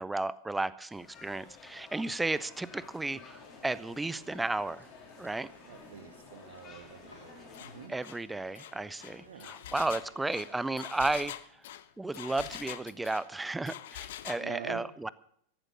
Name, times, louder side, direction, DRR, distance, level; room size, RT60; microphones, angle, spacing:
voice 1, 0.0-4.9 5.2-5.5 7.9-11.3 12.0-15.1, right 2 dB, 5° right, 18 dB, 0.7 m, -33 dB
sound 1, 0.9-7.9, left 5 dB, 30° left, 3.1 m, -53 dB
sound 2, 3.2-10.8, left 1 dB, 85° left, 3.9 m, -57 dB
voice 2, 5.6-7.9 9.2-9.5 14.4-14.8, right 8 dB, 60° right, 9 dB, 2.0 m, -46 dB
Engine, 7.5-7.7 8.0-8.2 8.5-13.3 13.7-14.5, left 13 dB, 55° left, 0.8 m, -44 dB
14.5 x 11.5 x 6.1 m, 0.66 s
figure-of-eight pair, 90°, 0 cm